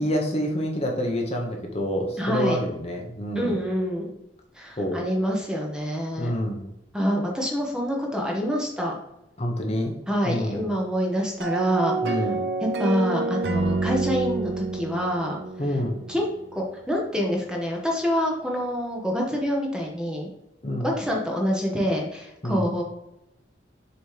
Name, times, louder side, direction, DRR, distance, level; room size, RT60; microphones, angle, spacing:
voice 1, 0.0-3.6 4.8-5.0 6.2-6.7 9.4-9.9 10.2-10.8 12.0-12.5 15.6-16.0 20.6-20.9 22.4-22.7, equal, 35° left, 1 dB, 1.0 m, -27 dB
voice 2, 2.2-2.6 3.3-4.1 4.5-6.3 6.9-9.0 10.1-12.2 12.8-15.4 16.1-16.2 16.5-20.3 20.8-22.8, equal, 5° right, -1 dB, 1.0 m, -26 dB
sound 1, 11.4-16.6, right 3 dB, 65° right, 0.6 m, -28 dB
6.9 x 3.1 x 4.9 m, 0.89 s
head